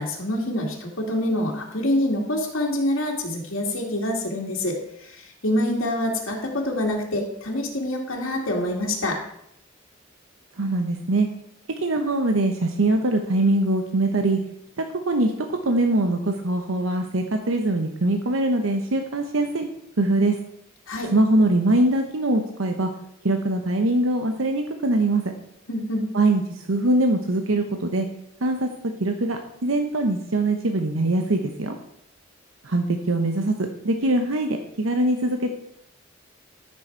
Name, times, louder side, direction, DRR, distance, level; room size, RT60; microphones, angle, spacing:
voice 1, 0.0-9.2 20.9-21.1 25.7-26.1, left 1 dB, 85° left, -1 dB, 2.2 m, -26 dB
voice 2, 10.6-11.3 11.8-14.4 14.8-19.7 20.0-20.4 21.1-22.9 23.2-25.2 26.1-28.1 28.4-28.7 29.0-31.8 32.6-35.6, right 2 dB, 85° right, 5 dB, 0.9 m, -22 dB
13.5 x 6.4 x 4.6 m, 0.75 s
head